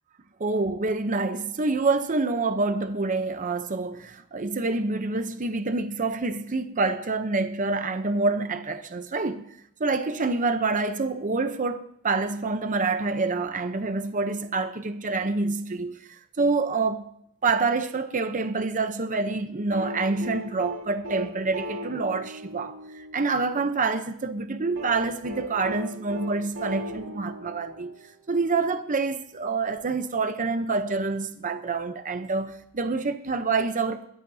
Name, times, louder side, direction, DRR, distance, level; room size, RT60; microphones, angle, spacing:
voice 1, 0.4-9.4 9.8-17.1 17.4-27.9 28.3-34.1, right 3 dB, 35° right, 0.7 m, -27 dB
sound 1, 19.7-23.8 24.8-28.3 29.8-29.9, left 1 dB, 70° right, 4.8 m, -38 dB
21.5 x 16.0 x 2.8 m
head